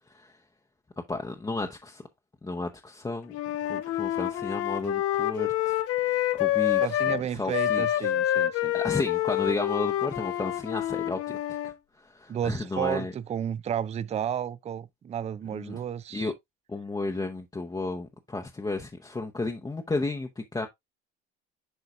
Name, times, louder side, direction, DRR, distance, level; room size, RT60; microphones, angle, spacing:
voice 1, 1.1-2.0 2.4-3.4 3.7-6.9 7.3-8.1 8.7-11.4 11.6-11.7 12.0-13.1 15.5-15.8 16.1-16.3 16.7-20.7, left 3 dB, 10° left, 0.8 m, -33 dB
Wind instrument woodwind instrument, 3.3-7.2 7.5-11.8, left 13 dB, 50° left, 0.8 m, -27 dB
voice 2, 6.8-8.7 12.3-16.3, right 9 dB, 20° right, 0.4 m, -32 dB
11.0 x 3.9 x 2.4 m
hypercardioid pair, 70°, 32 cm